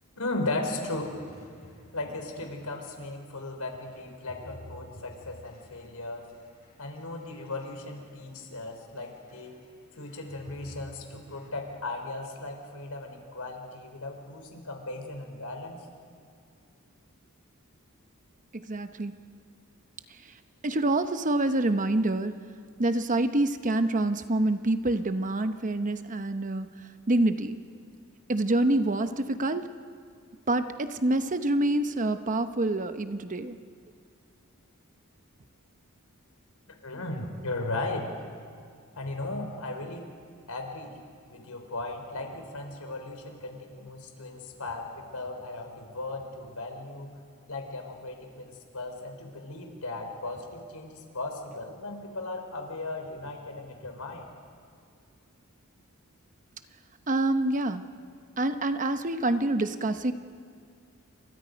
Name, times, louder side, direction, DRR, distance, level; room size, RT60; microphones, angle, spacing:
voice 1, 0.2-1.2 1.9-6.2 6.8-9.5 10.0-15.8 36.8-38.1 39.0-40.1 40.5-40.9 41.3-47.2 47.5-54.3, left 2 dB, 90° left, 3 dB, 4.1 m, -36 dB
sound 1, 1.0-3.0 3.6-8.6 8.9-9.7 9.9-11.5, left 1 dB, 45° left, 7.8 m, -52 dB
voice 2, 18.5-19.1 20.6-22.3 22.8-26.7 27.1-27.6 28.3-29.7 30.5-33.6 57.1-57.8 58.4-60.1, right 2 dB, 35° right, 9 dB, 0.9 m, -26 dB
29.0 x 26.0 x 5.3 m, 2.3 s
head